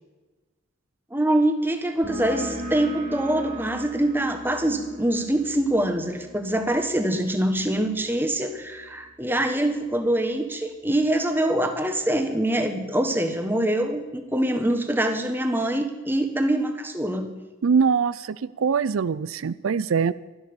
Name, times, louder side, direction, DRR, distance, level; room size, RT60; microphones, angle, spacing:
voice 1, 1.1-17.4, right 1 dB, 10° right, 6 dB, 1.4 m, -24 dB
sound 1, 2.0-9.3, right 1 dB, 45° right, 3.1 m, -39 dB
voice 2, 17.6-20.1, right 6 dB, 85° right, 17 dB, 0.4 m, -23 dB
13.0 x 12.0 x 6.9 m, 1.3 s
head